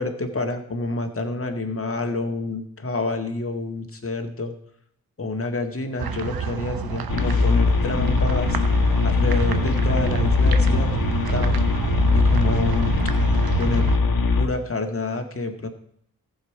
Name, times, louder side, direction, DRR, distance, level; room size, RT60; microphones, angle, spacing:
voice 1, 0.0-4.5 5.2-8.6 9.0-11.0 11.3-11.6 12.1-13.0 13.6-13.9 14.4-15.7, left 2 dB, 40° left, 5 dB, 1.8 m, -28 dB
sound 1, 6.0-14.0, right 6 dB, 85° right, 1.0 m, -27 dB
sound 2, 7.1-14.5, left 4 dB, 70° left, 1.8 m, -21 dB
14.5 x 7.3 x 4.7 m, 0.69 s
cardioid pair, 65°, 36 cm